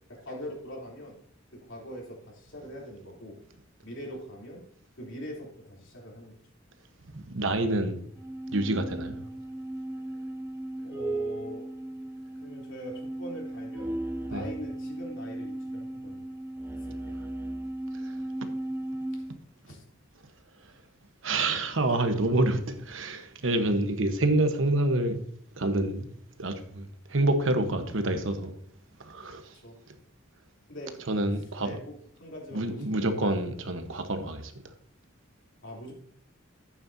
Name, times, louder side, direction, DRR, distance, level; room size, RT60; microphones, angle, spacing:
voice 1, 0.1-1.2 1.5-3.4 3.8-4.6 5.0-6.4 10.8-11.7 12.4-13.9 14.2-16.3 16.7-17.2 19.7-19.8 29.6-29.8 30.7-31.0 31.6-33.1 35.6-35.9, equal, 65° left, 3.5 m, -42 dB
voice 2, 7.1-8.0 8.5-9.2 14.3-14.4 17.9-18.1 21.2-25.2 25.6-26.1 26.4-28.5 29.0-29.5 31.1-31.8 32.5-34.5, right 2 dB, 75° right, 1.2 m, -27 dB
sound 1, 8.2-19.4, right 1 dB, 10° right, 0.4 m, -36 dB
11.0 x 8.8 x 2.8 m
head